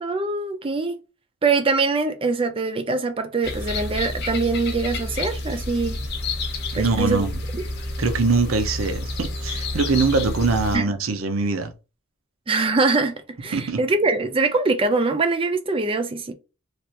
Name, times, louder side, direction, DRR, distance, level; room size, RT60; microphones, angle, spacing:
voice 1, 0.0-1.0 1.4-6.0 6.7-7.3 7.5-7.6 10.7-10.9 12.5-16.3, right 3 dB, 25° right, 0.4 m, -23 dB
sound 1, 3.4-10.8, left 2 dB, 50° left, 0.7 m, -29 dB
voice 2, 6.7-7.3 8.0-11.7 13.5-13.8, right 3 dB, 70° right, 0.6 m, -22 dB
3.3 x 2.4 x 2.8 m
head